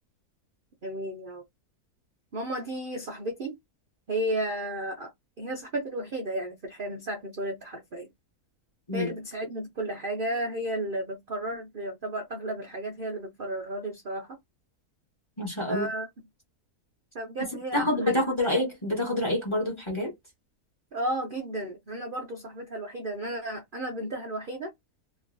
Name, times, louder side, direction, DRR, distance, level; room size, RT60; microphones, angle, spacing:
voice 1, 0.8-1.4 2.3-3.6 4.1-5.1 5.4-8.1 8.9-14.4 15.7-16.1 17.1-18.5 20.9-24.7, right 1 dB, 45° right, 0.7 m, -33 dB
voice 2, 15.4-15.9 17.7-20.1, left 1 dB, 20° left, 1.0 m, -27 dB
3.1 x 2.6 x 2.5 m
omnidirectional pair, 1.7 m